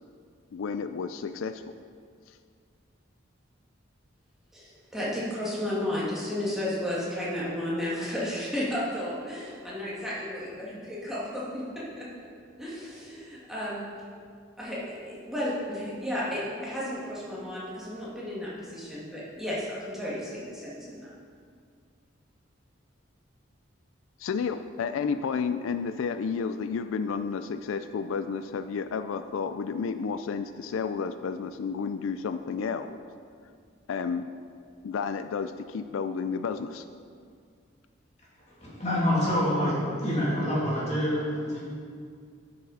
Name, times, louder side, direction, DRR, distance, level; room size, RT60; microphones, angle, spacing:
voice 1, 0.5-1.6 24.2-33.0 33.9-34.3 34.8-36.9, left 5 dB, 85° left, 10 dB, 0.4 m, -31 dB
voice 2, 4.5-12.1 12.6-13.8 14.6-21.1, left 1 dB, ahead, -8 dB, 2.0 m, -33 dB
voice 3, 38.6-41.6, equal, 35° left, -7 dB, 2.8 m, -26 dB
12.5 x 6.7 x 4.1 m, 2.1 s
head